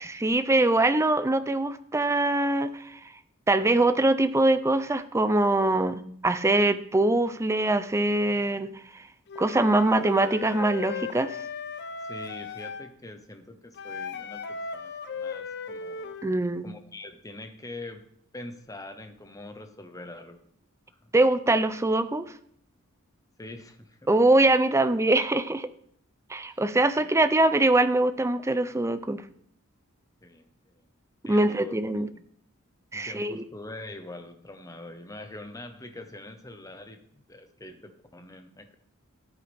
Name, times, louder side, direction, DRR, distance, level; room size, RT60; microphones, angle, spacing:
voice 1, 0.0-3.0 3.5-9.0 9.4-11.4 16.2-16.7 21.1-22.2 24.1-25.7 26.3-29.2 31.3-32.1 32.9-33.4, right 2 dB, 15° right, 12 dB, 0.5 m, -23 dB
Wind instrument woodwind instrument, 9.3-12.9 13.8-16.3, left 4 dB, 55° left, 0.6 m, -37 dB
voice 2, 12.0-16.1 16.6-18.0 18.3-20.4 20.9-21.0 23.4-24.1 26.5-26.6 27.0-27.1 30.2-30.8 31.2-32.2 32.9-37.0 37.3-38.7, left 2 dB, 15° left, 7 dB, 1.0 m, -44 dB
14.0 x 8.6 x 3.5 m, 0.66 s
head